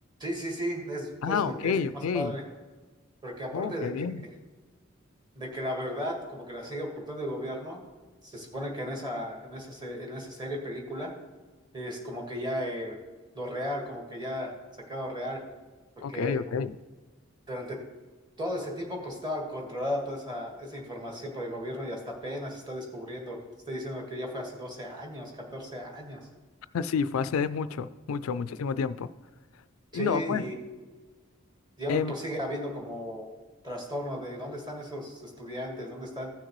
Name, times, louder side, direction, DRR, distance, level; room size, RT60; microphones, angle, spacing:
voice 1, 0.2-2.4 3.2-4.3 5.4-7.8 8.2-11.1 11.7-13.0 13.3-14.5 14.9-15.4 16.1-16.4 17.5-17.8 18.4-23.4 23.7-26.3 29.9-30.6 31.8-33.2 33.6-36.3, equal, 20° right, 0 dB, 1.7 m, -35 dB
voice 2, 1.2-2.3 3.5-4.2 16.0-16.8 26.7-29.1 29.9-30.4 31.9-32.1, left 6 dB, 80° left, 14 dB, 0.4 m, -29 dB
15.0 x 6.5 x 3.1 m, 1.3 s
head